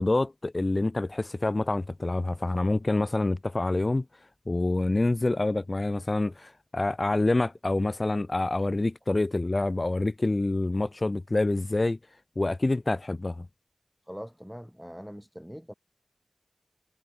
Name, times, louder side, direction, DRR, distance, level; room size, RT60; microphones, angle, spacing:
voice 1, 0.0-4.0 4.5-12.0 12.4-13.5, left 2 dB, 40° left, 0.6 m, -27 dB
voice 2, 14.1-15.7, equal, ahead, 3.0 m, -42 dB
cardioid pair, 45°, 0 cm